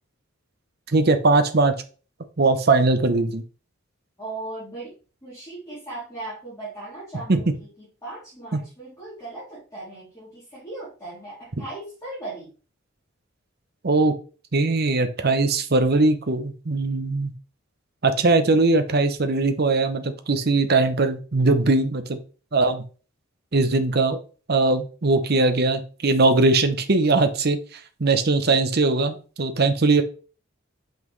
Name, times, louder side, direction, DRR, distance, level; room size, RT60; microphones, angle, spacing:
voice 1, 0.9-1.7 2.4-3.4 7.3-7.4 13.8-14.1 14.5-17.3 18.0-22.2 22.5-22.8 23.5-24.2 24.5-27.6 28.0-30.0, right 3 dB, 50° right, 9 dB, 0.8 m, -20 dB
voice 2, 4.2-4.9 5.2-12.5, right 2 dB, 15° left, -10 dB, 2.9 m, -38 dB
5.8 x 5.4 x 3.2 m, 0.37 s
head